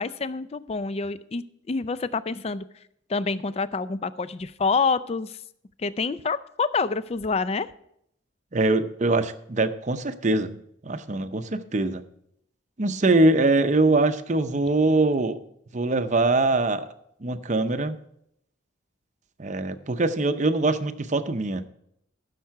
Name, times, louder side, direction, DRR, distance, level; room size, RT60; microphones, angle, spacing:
voice 1, 0.0-2.6 3.1-5.4 5.8-7.7, left 4 dB, 30° left, 15 dB, 0.4 m, -27 dB
voice 2, 8.5-10.6 10.8-12.0 12.8-15.4 15.7-16.9 17.2-18.0 19.4-21.6, right 2 dB, 40° right, 10 dB, 0.6 m, -23 dB
15.0 x 6.6 x 4.7 m, 0.74 s
head